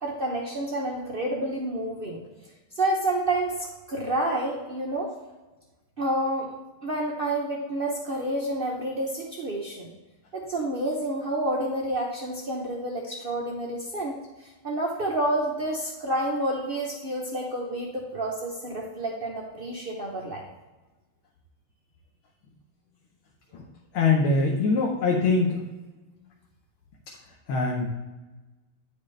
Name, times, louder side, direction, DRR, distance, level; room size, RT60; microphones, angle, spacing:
voice 1, 0.0-2.2 2.7-5.1 6.0-6.6 6.8-9.9 10.3-20.4, right 1 dB, 80° right, -2 dB, 0.5 m, -29 dB
voice 2, 23.9-25.6 27.5-27.9, left 3 dB, 75° left, -1 dB, 1.7 m, -23 dB
9.8 x 5.1 x 3.2 m, 1.2 s
omnidirectional pair, 2.3 m